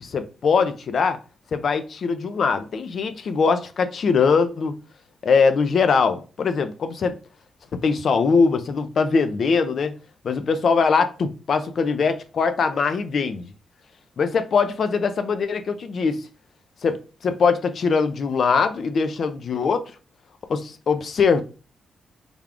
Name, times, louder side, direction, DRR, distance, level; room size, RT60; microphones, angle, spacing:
voice 1, 0.0-1.2 1.5-4.7 5.2-7.1 7.7-9.9 10.2-13.5 14.2-16.2 16.8-19.8 20.5-21.4, left 5 dB, 65° left, 0.4 m, -21 dB
3.5 x 2.3 x 3.5 m
supercardioid pair, 55°, 0 cm